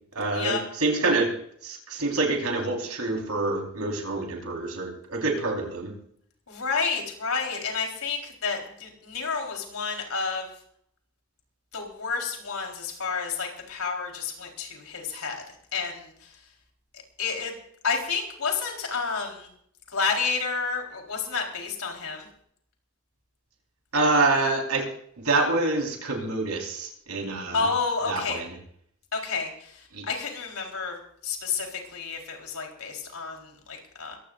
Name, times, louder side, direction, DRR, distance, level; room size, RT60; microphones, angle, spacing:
voice 1, 0.1-1.3 1.6-5.9 23.9-24.9 25.2-27.7 28.1-28.6 29.9-30.0, right 3 dB, 80° right, 1 dB, 4.5 m, -26 dB
voice 2, 6.5-10.5 11.7-15.4 15.7-16.1 17.2-17.5 17.8-19.5 19.9-22.3 27.5-28.4 29.1-29.7 30.1-34.2, left 5 dB, 80° left, 1 dB, 4.1 m, -30 dB
22.5 x 16.0 x 2.6 m, 0.67 s
head